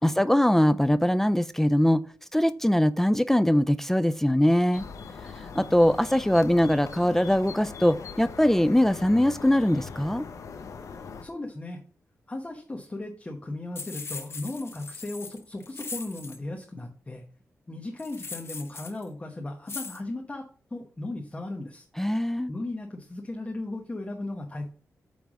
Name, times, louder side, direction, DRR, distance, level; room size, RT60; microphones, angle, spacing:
voice 1, 0.0-2.0 2.3-4.8 5.5-10.2 22.0-22.5, left 1 dB, 5° left, 0.4 m, -22 dB
sound 1, 4.7-11.2, left 5 dB, 70° left, 0.9 m, -41 dB
voice 2, 11.2-11.8 12.3-17.2 17.7-20.5 20.7-21.9 22.5-24.7, left 2 dB, 25° left, 1.1 m, -36 dB
sound 2, 13.8-16.4 18.0-19.0 19.7-20.0, left 4 dB, 50° left, 1.0 m, -39 dB
8.8 x 3.5 x 6.2 m
cardioid pair, 90°, 6 cm